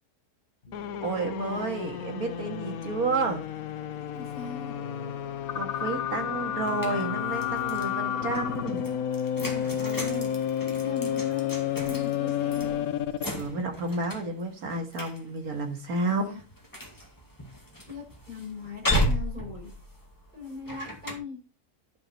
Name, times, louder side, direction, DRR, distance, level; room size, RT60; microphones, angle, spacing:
Keyboard (musical), 0.6-8.2, left 3 dB, 40° left, 1.6 m, -45 dB
sound 1, 0.7-13.4, left 10 dB, 70° left, 1.2 m, -31 dB
voice 1, 1.0-3.4 5.5-8.8 13.2-16.3, right 3 dB, 75° right, 4 dB, 2.4 m, -31 dB
voice 2, 4.1-4.8 9.3-10.3 10.7-12.9 16.1-16.4 17.8-19.7 20.3-21.4, left 4 dB, 30° right, -3 dB, 6.3 m, -40 dB
sound 2, 6.6-7.9 8.3-21.2, equal, 15° left, 2.1 m, -35 dB
11.5 x 5.9 x 4.4 m, 0.32 s
omnidirectional pair, 1.6 m